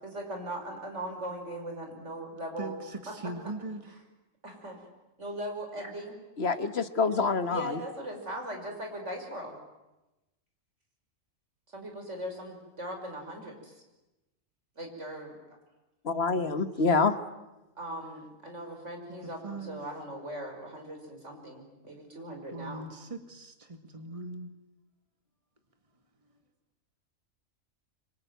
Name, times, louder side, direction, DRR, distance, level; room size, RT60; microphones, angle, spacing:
voice 1, 0.0-2.8 3.1-3.2 4.4-4.8 5.2-6.2 7.2-9.5 11.7-13.8 14.8-15.4 17.8-22.9, right 1 dB, 60° right, 3 dB, 5.9 m, -39 dB
voice 2, 2.6-3.9 16.4-16.9 19.4-19.8 22.5-24.6, right 2 dB, 25° right, 6 dB, 2.1 m, -40 dB
voice 3, 6.4-7.6 16.0-17.1, left 4 dB, 50° left, 11 dB, 1.5 m, -26 dB
26.0 x 24.5 x 9.3 m, 1.0 s
omnidirectional pair, 1.4 m